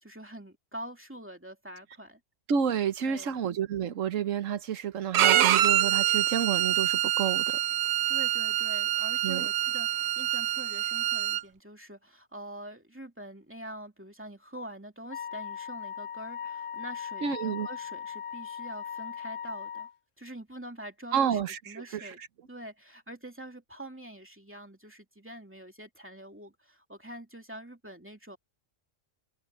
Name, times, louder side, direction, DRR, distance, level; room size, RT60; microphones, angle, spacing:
voice 1, 0.0-2.2 3.1-3.4 8.1-19.9 20.2-21.4 21.7-22.2 22.5-28.4, right 1 dB, 10° right, 2.6 m, -45 dB
voice 2, 2.5-7.6 9.2-9.5 17.2-17.7 21.1-22.3, right 8 dB, 85° right, 1.4 m, -30 dB
Bowed string instrument, 5.1-11.4, right 12 dB, 65° right, 0.8 m, -26 dB
Wind instrument woodwind instrument, 15.1-19.9, left 8 dB, 75° left, 1.1 m, -39 dB
omnidirectional pair, 1.3 m